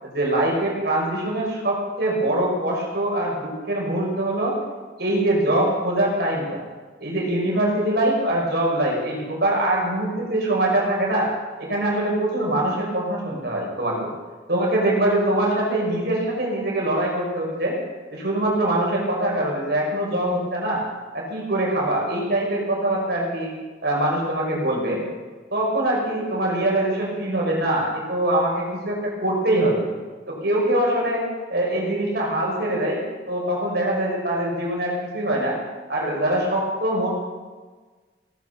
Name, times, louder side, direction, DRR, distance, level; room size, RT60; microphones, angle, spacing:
voice 1, 0.0-4.6 5.0-6.6 7.0-11.3 11.6-14.1 14.5-17.8 18.1-20.8 21.1-23.5 23.8-25.0 25.5-29.9 30.3-31.2 31.5-33.0 33.3-35.6 35.9-37.1, right 1 dB, 60° right, -2 dB, 5.8 m, -23 dB
18.0 x 11.0 x 7.1 m, 1.4 s
head